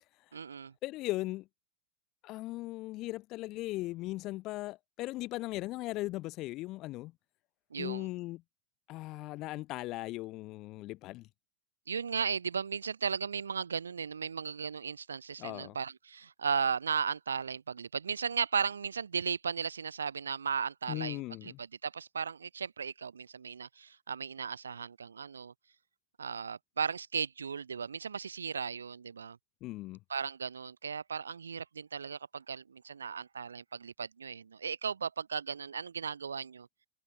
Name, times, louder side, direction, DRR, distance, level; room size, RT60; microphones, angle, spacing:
voice 1, 0.3-0.7 7.7-8.1 11.9-25.5 26.2-29.4 30.1-36.7, right 6 dB, 70° right, 0.6 m, -36 dB
voice 2, 0.8-1.5 2.2-7.1 7.8-8.4 8.9-11.3 15.4-15.8 20.9-21.6 29.6-30.0, left 18 dB, 40° left, 1.0 m, -38 dB
figure-of-eight pair, 90°, 0 cm